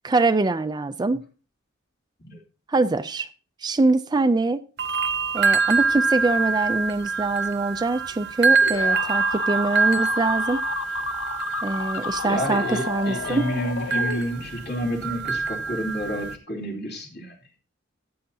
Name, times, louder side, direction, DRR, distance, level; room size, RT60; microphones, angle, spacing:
voice 1, 0.0-1.2 2.7-3.3 3.6-4.6 5.3-10.6 11.6-13.5, right 3 dB, 20° right, 0.4 m, -23 dB
sound 1, 4.8-16.3, right 4 dB, 60° right, 0.9 m, -25 dB
sound 2, 8.6-14.7, left 6 dB, 85° left, 0.5 m, -32 dB
voice 2, 12.2-17.3, equal, 60° left, 2.9 m, -29 dB
14.0 x 8.5 x 2.8 m
head